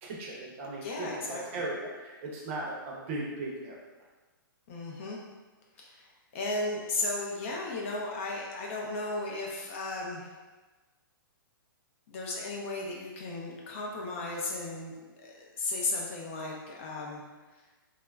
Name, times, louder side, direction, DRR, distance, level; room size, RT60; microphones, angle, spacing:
voice 1, 0.0-3.8, right 2 dB, 35° right, -3 dB, 0.5 m, -37 dB
voice 2, 0.8-1.6 4.7-5.2 5.8-10.3 12.1-14.9 15.2-17.2, left 2 dB, 35° left, -2 dB, 0.4 m, -35 dB
2.9 x 2.3 x 2.2 m, 1.2 s
hypercardioid pair, 160°, 12 cm